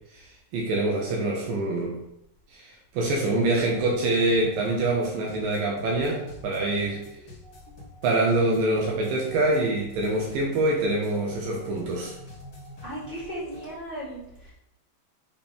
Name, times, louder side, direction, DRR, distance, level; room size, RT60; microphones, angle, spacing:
voice 1, 0.1-2.0 2.5-7.0 8.0-12.1, right 2 dB, 85° right, -1 dB, 2.0 m, -25 dB
sound 1, 3.4-13.7, left 1 dB, 40° left, 1.8 m, -46 dB
voice 2, 12.8-14.5, equal, 35° right, -10 dB, 1.0 m, -36 dB
6.8 x 5.8 x 3.4 m, 0.80 s
omnidirectional pair, 5.5 m